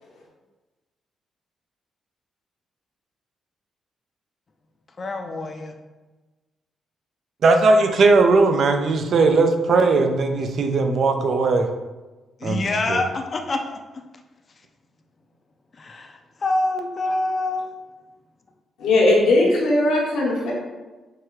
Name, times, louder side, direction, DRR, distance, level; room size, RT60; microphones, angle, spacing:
voice 1, 5.0-5.7 12.4-13.8 15.8-17.8, left 2 dB, 40° left, 4 dB, 0.4 m, -26 dB
voice 2, 7.4-11.7 12.4-12.6 12.9-13.0, right 3 dB, 60° right, 6 dB, 0.4 m, -18 dB
voice 3, 18.8-20.5, left 2 dB, 90° left, -3 dB, 1.0 m, -18 dB
4.6 x 2.3 x 3.0 m, 1.2 s
cardioid pair, 90°, 0 cm